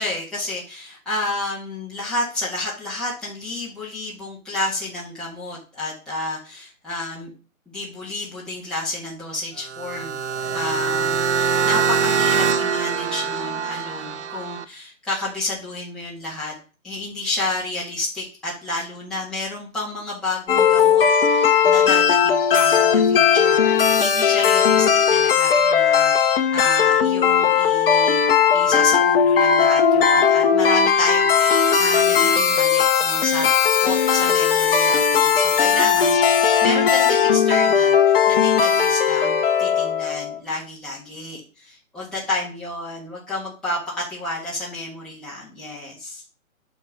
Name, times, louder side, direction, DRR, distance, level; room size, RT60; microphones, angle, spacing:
voice 1, 0.0-7.3 7.7-10.2 10.5-16.5 16.8-28.2 28.5-33.5 33.8-46.2, left 2 dB, ahead, -8 dB, 1.6 m, -30 dB
sound 1, 9.6-14.6, right 6 dB, 55° right, 1.0 m, -23 dB
sound 2, 20.5-40.4, left 7 dB, 40° left, 0.9 m, -17 dB
9.1 x 3.6 x 5.9 m, 0.36 s
hypercardioid pair, 150°, 42 cm